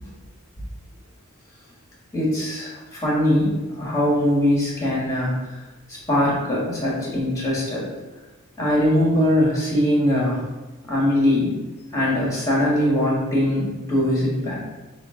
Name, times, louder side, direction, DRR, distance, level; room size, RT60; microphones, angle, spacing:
voice 1, 2.1-5.4 6.1-7.8 8.6-10.4 10.9-11.5 11.9-14.6, left 1 dB, 15° left, -5 dB, 1.4 m, -21 dB
5.6 x 2.5 x 3.6 m, 1.1 s
head